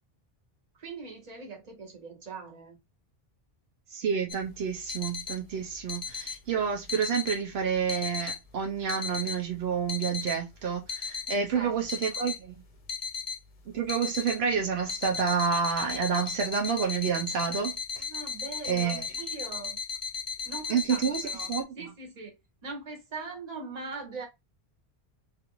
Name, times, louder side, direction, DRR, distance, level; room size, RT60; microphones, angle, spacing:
voice 1, 0.8-2.8 11.3-11.8 18.0-19.8 20.4-22.4 22.6-24.3, right 4 dB, 40° right, 1.0 m, -41 dB
voice 2, 3.9-12.6 13.7-18.1 18.7-19.1 20.7-21.7, right 6 dB, 75° right, 0.9 m, -29 dB
sound 1, 4.3-21.6, left 5 dB, 45° left, 0.6 m, -36 dB
3.2 x 2.5 x 2.9 m
omnidirectional pair, 1.1 m